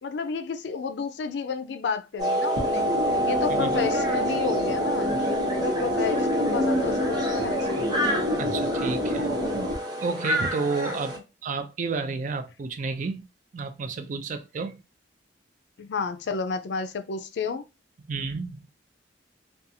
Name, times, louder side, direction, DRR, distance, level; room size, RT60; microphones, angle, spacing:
voice 1, 0.0-2.8 3.3-5.2 5.4-7.9 10.8-11.0 15.8-17.6, left 5 dB, 65° left, 0.4 m, -31 dB
sound 1, 2.2-11.2, right 1 dB, 25° right, 0.8 m, -29 dB
sound 2, 2.6-9.7, left 1 dB, 85° right, 0.9 m, -27 dB
voice 2, 8.4-9.3 10.0-13.3 13.5-14.8 18.1-18.6, right 4 dB, 45° right, 0.4 m, -31 dB
2.5 x 2.3 x 2.7 m
head